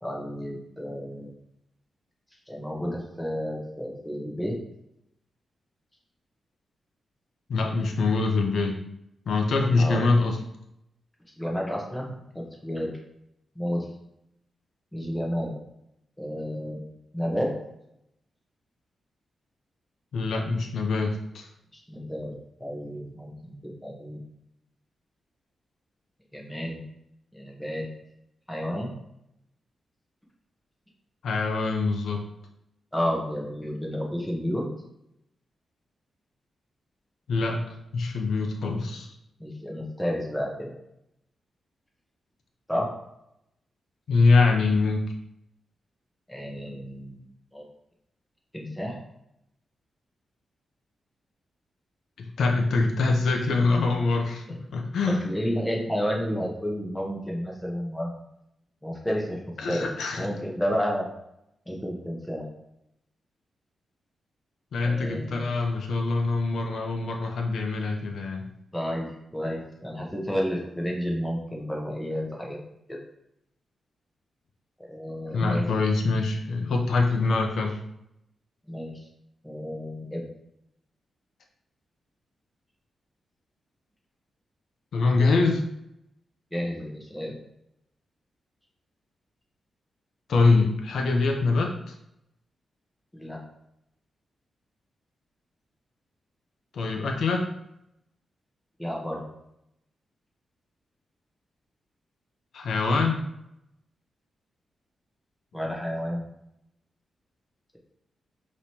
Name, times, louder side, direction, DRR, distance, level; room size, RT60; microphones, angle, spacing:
voice 1, 0.0-1.3 2.5-4.6 9.6-10.0 11.4-12.9 13.5-13.8 14.9-15.5 16.2-16.8 17.1-17.5 21.7-22.3 22.6-24.2 26.3-26.8 27.3-27.9 28.5-28.9 32.9-34.7 39.4-40.7 42.7-42.9 46.3-47.2 47.5-47.7 48.5-49.0 55.0-58.2 58.8-59.4 59.7-59.9 60.2-61.1 61.7-62.4 64.8-65.5 68.7-72.6 72.9-73.0 74.8-75.7 78.7-79.0 79.4-80.2 86.5-87.4 93.1-93.4 98.8-99.2 105.5-106.2, equal, 5° left, -2 dB, 1.1 m, -31 dB
voice 2, 7.5-8.7 9.3-10.4 20.1-21.5 31.2-32.2 37.3-37.6 37.9-39.1 44.1-45.0 52.2-55.2 59.6-60.3 64.7-68.4 75.3-77.8 84.9-85.6 90.3-91.9 96.7-97.5 102.5-103.2, left 3 dB, 75° left, 2 dB, 0.7 m, -24 dB
5.2 x 3.1 x 2.8 m, 0.79 s
cardioid pair, 105°, 0 cm